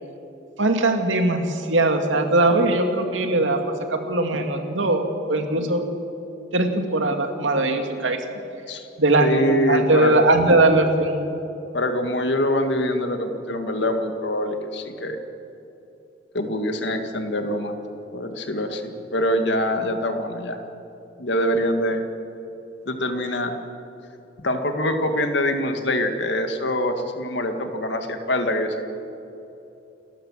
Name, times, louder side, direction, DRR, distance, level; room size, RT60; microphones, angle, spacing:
voice 1, 0.6-3.6 3.9-5.8 6.5-8.2 9.0-11.2, right 2 dB, 85° right, 5 dB, 2.2 m, -20 dB
voice 2, 9.2-10.2 11.7-15.2 16.3-17.7 18.1-20.6 21.2-22.0 22.9-23.5 24.4-28.9, left 1 dB, 65° left, 6 dB, 2.0 m, -24 dB
29.5 x 12.5 x 7.5 m, 2.9 s
head